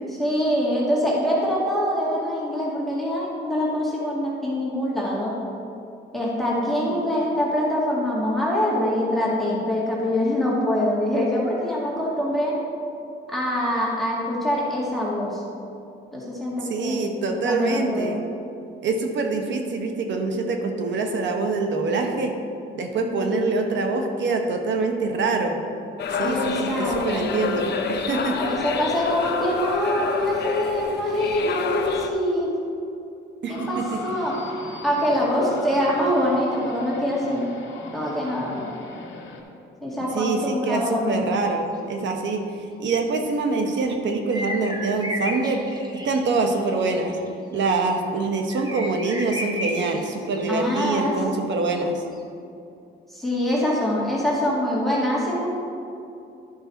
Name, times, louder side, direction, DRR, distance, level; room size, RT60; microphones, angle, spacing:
voice 1, 0.2-5.3 6.1-12.6 13.3-15.4 16.1-17.1 17.5-18.1 23.1-23.5 26.2-27.4 28.4-32.5 33.5-34.4 34.8-37.5 37.9-38.7 39.8-41.3 50.5-51.1 53.1-55.5, left 1 dB, ahead, -6 dB, 2.1 m, -24 dB
voice 2, 16.7-18.2 18.8-22.3 22.7-25.6 26.1-28.4 33.4-34.0 40.1-42.4 42.8-47.2 47.5-52.0, right 3 dB, 65° right, 4 dB, 1.2 m, -25 dB
sound 1, 26.0-32.1, left 5 dB, 55° left, 0.8 m, -28 dB
sound 2, 33.5-39.4, left 4 dB, 75° left, 1.5 m, -39 dB
sound 3, 41.3-41.4 44.3-47.3 47.5-47.9 48.5-50.7 52.1-52.2, left 1 dB, 20° right, 1.5 m, -33 dB
11.5 x 5.6 x 4.1 m, 2.6 s
cardioid pair, 90°, 20 cm